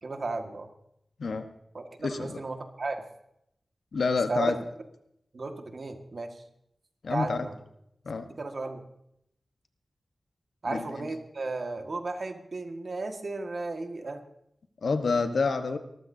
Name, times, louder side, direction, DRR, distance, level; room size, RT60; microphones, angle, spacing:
voice 1, 0.0-0.7 1.7-3.0 4.3-4.5 5.3-6.4 7.1-7.6 8.2-8.8 10.6-14.2, right 3 dB, 55° right, 5 dB, 1.7 m, -34 dB
voice 2, 2.0-2.4 3.9-4.6 7.0-7.5 8.0-8.3 10.7-10.9 14.8-15.8, left 4 dB, 90° left, 8 dB, 1.2 m, -28 dB
23.5 x 14.0 x 2.7 m, 0.76 s
wide cardioid pair, 105°, 0 cm